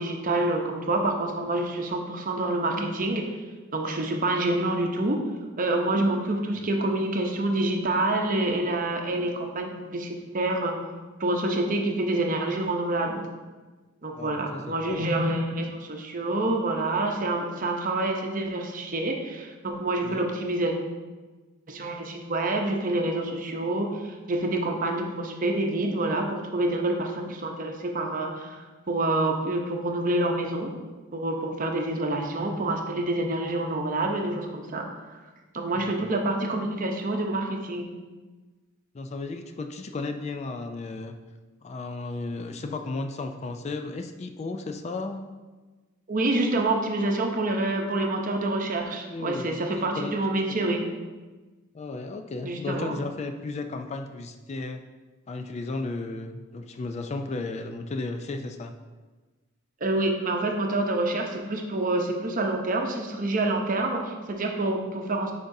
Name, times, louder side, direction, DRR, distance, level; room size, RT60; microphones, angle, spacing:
voice 1, 0.0-3.3 3.7-5.2 5.6-10.7 11.2-13.2 14.0-20.7 21.7-30.7 31.1-34.9 35.5-37.9 46.1-50.8 52.4-53.0 59.8-65.3, right 2 dB, 40° right, 2 dB, 0.7 m, -27 dB
voice 2, 14.2-15.1 20.0-20.2 35.8-35.9 38.9-41.2 41.6-45.3 49.1-49.6 50.0-50.1 50.5-50.6 51.7-54.8 55.3-58.7, left 3 dB, 35° left, 6 dB, 0.3 m, -34 dB
8.4 x 5.2 x 2.7 m, 1.3 s
head